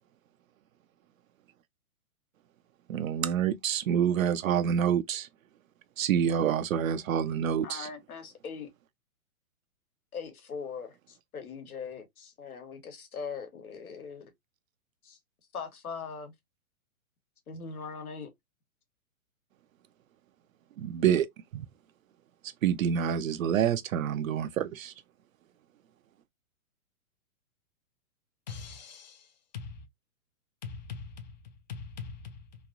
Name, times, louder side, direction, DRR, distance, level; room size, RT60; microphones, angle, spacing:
voice 1, 2.9-5.3 6.0-7.9 20.8-21.3 21.5-21.6 22.6-24.9, right 9 dB, 70° right, 0.5 m, -27 dB
voice 2, 7.6-8.7 10.1-14.3 15.0-15.2 15.5-16.3 17.5-18.3, left 5 dB, 80° left, 1.2 m, -40 dB
voice 3, 28.5-29.3 29.5-29.8 30.6-31.4 31.7-32.4, left 5 dB, 35° left, 0.4 m, -41 dB
3.1 x 2.5 x 2.4 m
hypercardioid pair, 135°, 43 cm